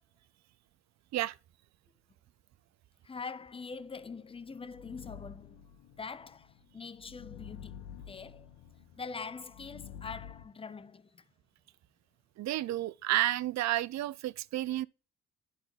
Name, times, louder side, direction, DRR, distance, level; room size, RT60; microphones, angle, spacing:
voice 1, 3.0-5.7 6.0-8.5 9.0-11.2, left 5 dB, 20° left, 0.5 m, -44 dB
sound 1, 4.0-10.4, left 9 dB, 80° left, 1.2 m, -50 dB
voice 2, 12.4-14.9, right 15 dB, 65° right, 0.5 m, -31 dB
11.0 x 3.9 x 4.0 m
cardioid pair, 90°, 30 cm